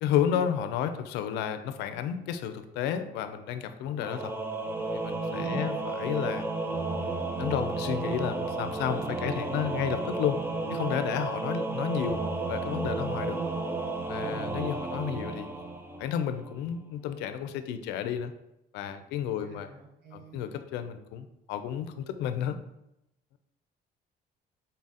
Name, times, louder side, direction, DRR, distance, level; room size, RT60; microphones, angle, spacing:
voice 1, 0.0-4.3 4.9-6.5 7.0-10.4 10.7-13.4 14.1-15.5 16.0-18.3 18.7-19.7 20.1-22.6, left 9 dB, 90° left, 9 dB, 0.4 m, -32 dB
Singing / Musical instrument, 4.0-16.5, right 3 dB, 15° right, 0.4 m, -32 dB
voice 2, 5.4-5.9 19.4-20.4, right 1 dB, 70° right, -1 dB, 1.2 m, -43 dB
3.9 x 2.4 x 4.0 m, 0.84 s
cardioid pair, 110°, 17 cm